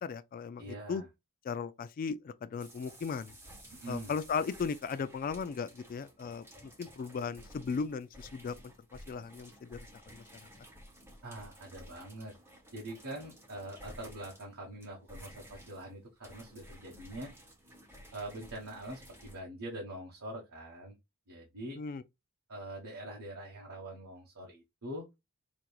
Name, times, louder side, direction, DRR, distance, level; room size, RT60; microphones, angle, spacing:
voice 1, 0.0-1.0 1.4-3.3 3.9-8.5 9.1-9.9 10.1-10.2 21.8-22.0, left 5 dB, 40° left, 0.3 m, -37 dB
voice 2, 0.6-1.1 3.7-4.1 11.2-12.3 12.7-17.3 18.1-21.0 21.3-21.8 22.5-25.1, right 1 dB, 70° right, 1.2 m, -44 dB
sound 1, 2.6-19.4, equal, 10° right, 1.0 m, -54 dB
5.0 x 3.0 x 2.3 m
head